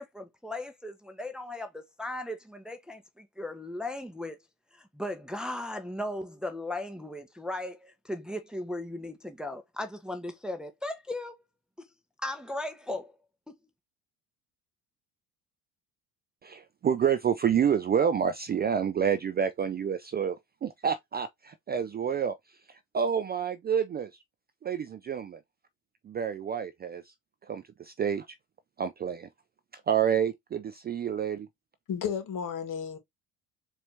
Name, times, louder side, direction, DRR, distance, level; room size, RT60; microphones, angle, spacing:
voice 1, 0.0-4.4 4.7-11.4 11.8-11.9 12.2-13.1 13.5-13.6, left 1 dB, ahead, 0.7 m, -37 dB
voice 2, 16.4-22.3 22.9-24.1 24.6-25.4 26.0-27.0 27.5-28.3 28.8-29.3 29.9-31.5, right 8 dB, 25° right, 0.4 m, -28 dB
voice 3, 31.9-33.0, left 7 dB, 50° left, 1.4 m, -33 dB
4.3 x 2.7 x 3.2 m
supercardioid pair, 75°, 40 cm